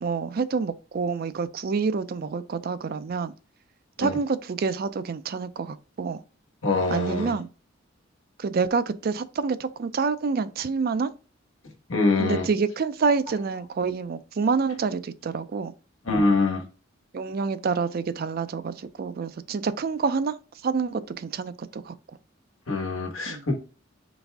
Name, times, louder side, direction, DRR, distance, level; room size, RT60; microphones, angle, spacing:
voice 1, 0.0-3.3 4.0-6.2 6.9-7.5 8.4-11.1 12.2-15.7 17.1-20.4 20.6-22.0 23.3-23.5, right 5 dB, 50° right, 0.4 m, -27 dB
voice 2, 6.6-7.3 11.9-12.5 16.1-16.6 22.7-23.5, left 3 dB, 85° left, 1.3 m, -24 dB
4.0 x 3.5 x 3.4 m
head